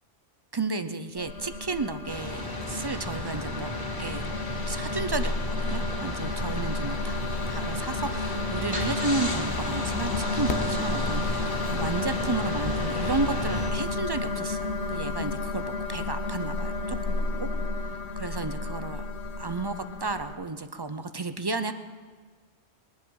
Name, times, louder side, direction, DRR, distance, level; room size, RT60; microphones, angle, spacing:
voice 1, 0.5-3.7 4.0-4.3 4.6-7.2 7.5-17.5 18.2-19.1 19.4-21.7, right 3 dB, 35° right, 10 dB, 0.4 m, -33 dB
sound 1, 1.2-20.4, left 3 dB, 80° left, 1.2 m, -31 dB
sound 2, 2.1-13.7, left 1 dB, 30° left, 2.8 m, -34 dB
sound 3, 3.5-17.8, right 2 dB, 85° right, 1.9 m, -48 dB
21.5 x 10.5 x 4.7 m, 1.5 s
omnidirectional pair, 1.1 m